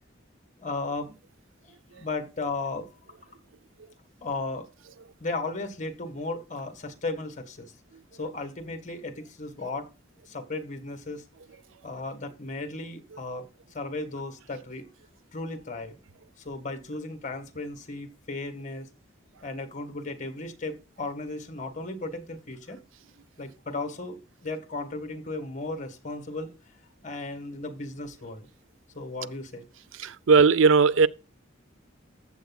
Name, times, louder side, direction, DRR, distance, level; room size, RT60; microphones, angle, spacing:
voice 1, 0.6-1.1 1.6-2.9 4.2-4.7 5.2-7.7 8.1-9.9 10.2-11.2 11.8-13.5 13.7-14.9 15.3-16.0 16.4-18.9 19.4-22.8 23.4-26.5 27.0-28.5 28.9-29.7, left 2 dB, 40° left, 1.7 m, -35 dB
voice 2, 30.0-31.1, right 5 dB, 85° right, 0.5 m, -18 dB
14.5 x 8.2 x 2.4 m
head